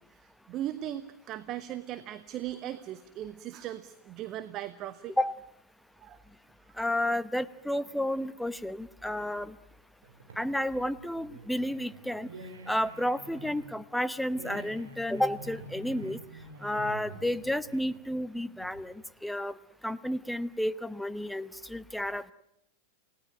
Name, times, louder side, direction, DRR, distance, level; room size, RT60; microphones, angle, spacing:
voice 1, 0.1-5.1 6.0-6.2, right 12 dB, 35° right, 13 dB, 1.1 m, -38 dB
voice 2, 6.8-9.5 10.4-12.3 12.7-16.2 16.6-19.6 19.8-22.3, left 1 dB, ahead, 16 dB, 0.9 m, -31 dB
sound 1, 10.0-19.1, right 2 dB, 65° right, 4.9 m, -47 dB
29.0 x 18.0 x 9.1 m, 0.80 s
figure-of-eight pair, 90°, 0 cm